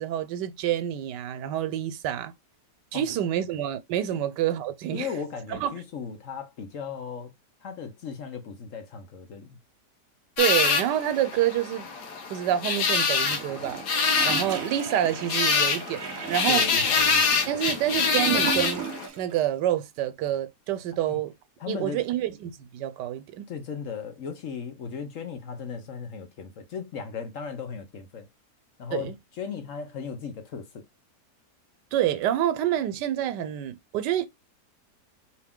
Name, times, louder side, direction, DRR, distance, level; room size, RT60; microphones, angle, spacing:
voice 1, 0.0-2.3 2.9-5.1 5.5-5.7 10.4-11.9 12.3-13.8 14.2-16.6 17.5-18.9 19.2-21.3 21.7-23.5 28.9-29.1 31.9-34.3, right 11 dB, 85° right, 1.3 m, -27 dB
voice 2, 4.9-7.3 7.6-9.6 16.5-17.4 21.1-21.2 21.6-22.0 23.5-28.3 28.8-30.8, left 6 dB, 55° left, 1.1 m, -36 dB
sound 1, 10.4-19.1, left 5 dB, 75° left, 1.6 m, -25 dB
Gurgling / Toilet flush, 13.2-19.3 19.6-19.7, right 7 dB, 60° right, 1.2 m, -36 dB
4.5 x 2.8 x 3.6 m
omnidirectional pair, 1.8 m